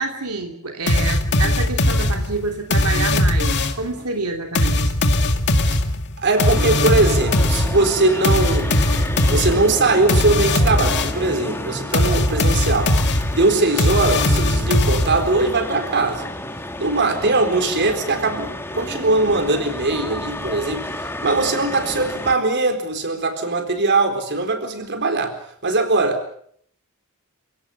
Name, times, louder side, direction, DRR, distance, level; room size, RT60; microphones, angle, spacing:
voice 1, 0.0-4.9, right 3 dB, 90° right, 3 dB, 2.9 m, -27 dB
sound 1, 0.9-3.9 4.6-11.3 11.9-15.4, left 1 dB, 50° left, 2.2 m, -19 dB
voice 2, 6.2-8.8 9.3-13.0 13.3-16.3 16.8-25.4 25.6-26.3, right 2 dB, 50° right, 6 dB, 4.2 m, -20 dB
sound 2, 6.4-22.4, left 1 dB, 10° left, 1.6 m, -31 dB
28.5 x 17.0 x 7.0 m, 0.64 s
head